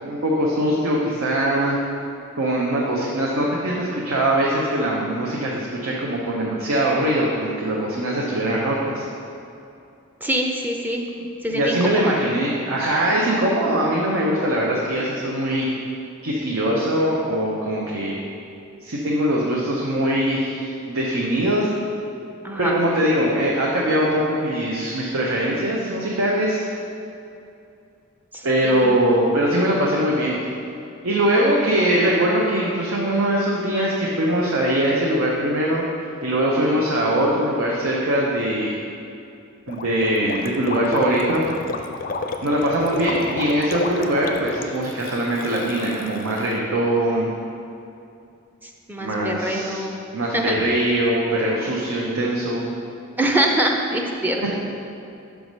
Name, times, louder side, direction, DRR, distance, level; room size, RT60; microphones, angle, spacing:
voice 1, 0.0-1.8 2.4-9.1 11.5-15.7 16.2-18.2 18.8-21.7 22.6-26.6 28.4-30.4 31.0-35.8 36.2-38.7 39.7-41.5 42.4-47.3 49.0-49.8 50.1-52.6, right 1 dB, 80° right, -3 dB, 0.7 m, -22 dB
voice 2, 10.2-11.0 11.4-12.2 22.4-22.7 28.3-28.9 48.9-50.0 50.3-50.6 53.2-54.6, right 1 dB, 10° right, 1 dB, 0.5 m, -24 dB
Gurgling, 39.7-46.6, left 3 dB, 45° left, 0.4 m, -31 dB
6.3 x 4.7 x 5.3 m, 2.6 s
head